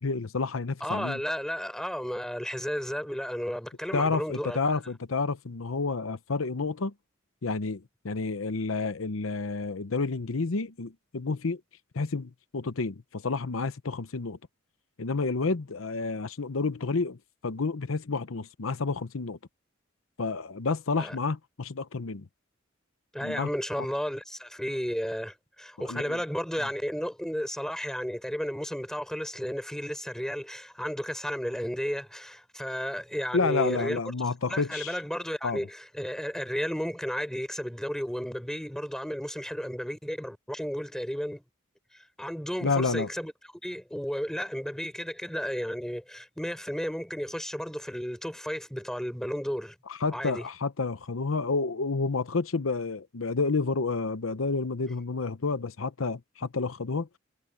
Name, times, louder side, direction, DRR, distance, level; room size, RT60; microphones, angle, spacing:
voice 1, 0.0-1.2 3.9-6.9 7.4-11.6 11.9-14.4 15.0-17.2 17.4-19.4 20.2-22.2 23.2-23.5 25.8-26.2 26.6-26.7 33.3-35.0 35.4-35.6 42.6-43.1 49.9-57.1, left 4 dB, 85° left, 0.8 m, -30 dB
voice 2, 0.8-4.6 21.0-21.1 23.1-34.0 34.5-41.4 42.2-43.3 43.6-49.7 50.1-50.4, equal, 5° left, 4.7 m, -33 dB
head